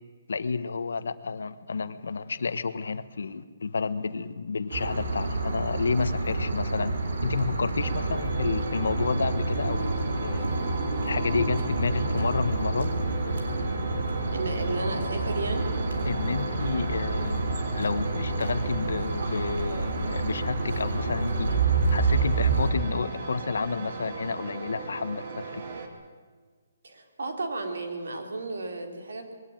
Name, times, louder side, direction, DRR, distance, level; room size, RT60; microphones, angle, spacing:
voice 1, 0.3-9.9 10.2-10.5 11.0-12.9 16.0-21.5 21.9-25.6, left 4 dB, 75° left, 13 dB, 1.2 m, -30 dB
sound 1, 4.7-22.7, right 3 dB, 55° right, 3.3 m, -28 dB
sound 2, 7.8-25.9, right 4 dB, 35° right, 2.2 m, -38 dB
voice 2, 14.3-15.7 26.8-29.3, right 3 dB, 75° right, 4 dB, 3.8 m, -33 dB
21.5 x 17.0 x 9.1 m, 1.5 s
hypercardioid pair, 180°, 0 cm